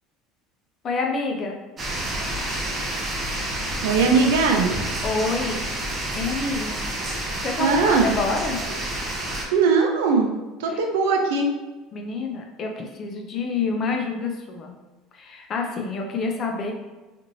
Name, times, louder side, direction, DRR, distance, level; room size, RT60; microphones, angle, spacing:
voice 1, 0.8-1.6 5.0-5.7 6.1-6.8 7.2-8.6 11.9-14.8 15.1-16.7, left 4 dB, 40° left, 2 dB, 0.5 m, -28 dB
sound 1, 1.8-9.4, right 1 dB, 30° right, 0.7 m, -29 dB
voice 2, 3.8-4.7 7.6-8.2 9.5-10.3 10.6-11.5, right 4 dB, 85° right, 3 dB, 0.5 m, -20 dB
3.0 x 2.5 x 2.7 m, 1.2 s
supercardioid pair, 115°, 0 cm